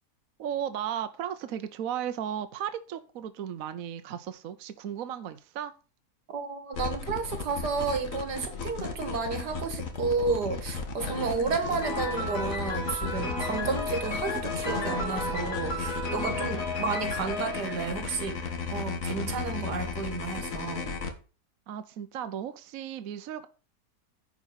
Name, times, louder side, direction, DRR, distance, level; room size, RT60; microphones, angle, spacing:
voice 1, 0.4-5.7 21.7-23.5, right 9 dB, 65° right, 1.1 m, -35 dB
voice 2, 6.3-18.4 18.7-20.9, right 4 dB, 85° right, 2.1 m, -32 dB
sound 1, 6.7-21.1, left 5 dB, 55° left, 1.7 m, -35 dB
Piano, 11.8-18.6, left 1 dB, 75° left, 3.1 m, -34 dB
sound 2, 14.7-18.1, right 2 dB, ahead, 1.3 m, -50 dB
9.9 x 4.9 x 5.6 m
omnidirectional pair, 1.7 m